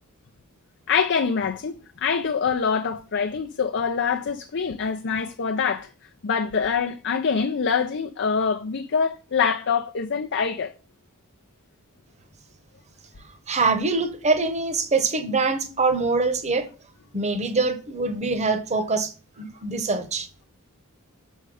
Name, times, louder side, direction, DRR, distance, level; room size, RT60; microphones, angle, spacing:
voice 1, 0.9-5.9 6.2-10.7, left 6 dB, 55° left, 0.6 m, -25 dB
voice 2, 13.5-16.7 17.1-19.1 19.4-20.3, right 3 dB, 30° right, 1.1 m, -24 dB
6.6 x 5.5 x 4.8 m
head